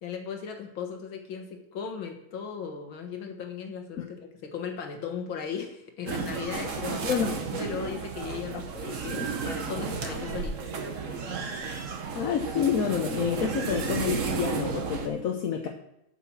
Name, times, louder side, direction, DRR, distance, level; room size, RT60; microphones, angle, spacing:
voice 1, 0.0-7.1 7.5-11.0, left 6 dB, 85° left, 4 dB, 2.1 m, -37 dB
sound 1, 6.1-15.1, right 5 dB, 50° right, 1.1 m, -33 dB
voice 2, 7.0-7.4 12.1-15.7, left 7 dB, 60° left, 2 dB, 1.0 m, -28 dB
sound 2, 9.8-14.4, right 3 dB, 85° right, 1.8 m, -44 dB
8.0 x 5.8 x 7.2 m, 0.86 s
omnidirectional pair, 2.1 m